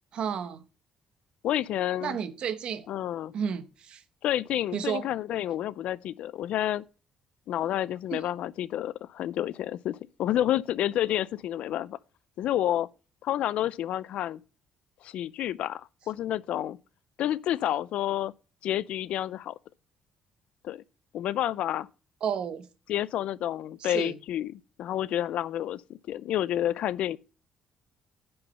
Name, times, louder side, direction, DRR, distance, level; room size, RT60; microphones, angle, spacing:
voice 1, 0.1-0.6 2.0-2.9 3.3-4.0 4.7-5.1 8.1-8.2 22.2-22.7 23.8-24.2, right 7 dB, 50° right, 1.0 m, -32 dB
voice 2, 1.4-2.2 2.9-3.3 4.2-6.8 7.5-12.0 12.4-12.9 13.2-14.4 15.0-16.8 17.2-18.3 18.6-19.6 20.6-20.8 21.1-21.9 22.9-27.2, left 12 dB, 65° left, 0.4 m, -29 dB
9.7 x 5.5 x 5.3 m
cardioid pair, 145°, 2 cm